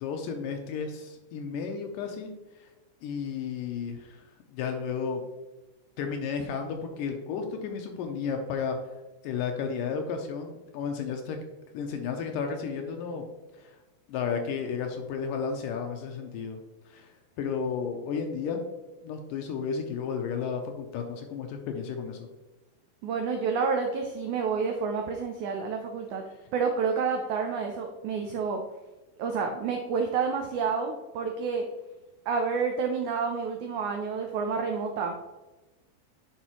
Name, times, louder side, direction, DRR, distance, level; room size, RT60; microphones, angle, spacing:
voice 1, 0.0-2.3 2.6-2.7 3.0-4.2 4.5-5.2 6.0-8.8 9.2-11.4 11.7-13.3 13.6-13.8 14.1-16.6 16.9-18.6 19.0-22.3, left 6 dB, 80° left, 4 dB, 2.1 m, -33 dB
voice 2, 23.0-26.2 26.5-28.6 29.2-31.7 32.3-35.2, right 5 dB, 85° right, 3 dB, 1.7 m, -29 dB
9.9 x 5.0 x 3.0 m, 1.1 s
omnidirectional pair, 4.3 m